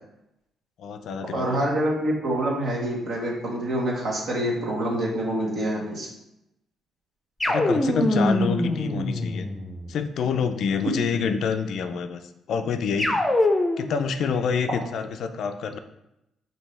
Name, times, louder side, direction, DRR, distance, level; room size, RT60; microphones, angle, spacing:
voice 1, 0.8-1.6 7.4-9.5 9.9-12.2 12.5-13.2 13.8-15.8, left 6 dB, 70° left, 8 dB, 0.4 m, -27 dB
voice 2, 1.3-6.1, right 1 dB, 65° right, -3 dB, 1.4 m, -26 dB
sound 1, 7.4-9.9 13.0-14.0, left 1 dB, 10° left, 0.6 m, -23 dB
5.3 x 2.8 x 3.2 m, 0.86 s
cardioid pair, 90°, 0 cm